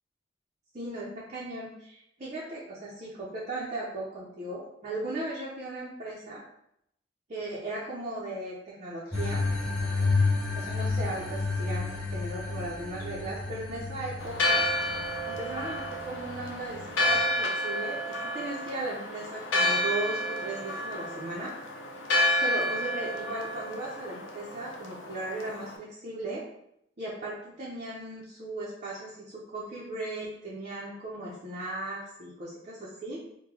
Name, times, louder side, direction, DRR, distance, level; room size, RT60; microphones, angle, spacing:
voice 1, 0.7-6.4 7.3-9.4 10.5-14.7 15.3-21.5 22.4-26.4 27.0-33.2, right 2 dB, 40° right, -7 dB, 0.7 m, -37 dB
sound 1, 9.1-17.2, left 3 dB, 5° left, 0.8 m, -31 dB
Church bell, 14.2-25.8, left 1 dB, 80° left, 0.5 m, -30 dB
3.1 x 2.2 x 3.7 m, 0.76 s
head